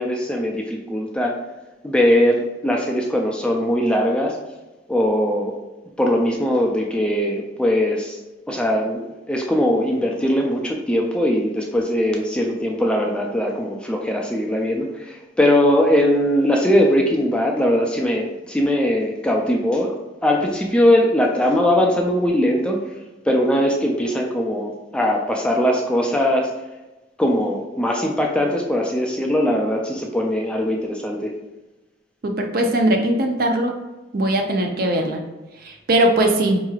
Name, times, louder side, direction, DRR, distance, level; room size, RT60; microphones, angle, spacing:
voice 1, 0.0-1.3 1.8-4.4 4.9-5.6 6.0-8.2 8.5-9.0 9.3-22.8 23.3-26.5 27.2-31.3, equal, 5° left, 0 dB, 0.3 m, -20 dB
voice 2, 32.2-33.7 34.1-35.2 35.6-36.6, right 1 dB, 55° right, 3 dB, 0.5 m, -20 dB
4.6 x 3.0 x 2.3 m, 1.1 s
head